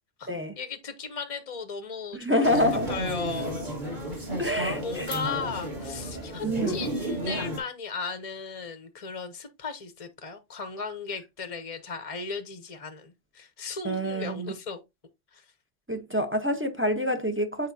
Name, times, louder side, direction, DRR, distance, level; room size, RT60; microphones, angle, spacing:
voice 1, 0.2-2.5 2.9-3.7 4.1-14.8 15.3-15.5, left 4 dB, 35° left, 0.7 m, -36 dB
voice 2, 2.1-2.9 4.4-5.1 6.4-6.8 13.8-14.5 15.9-17.7, equal, 15° right, 0.6 m, -27 dB
sound 1, 2.4-7.6, equal, 40° right, 2.0 m, -32 dB
8.5 x 4.6 x 2.7 m
omnidirectional pair, 1.2 m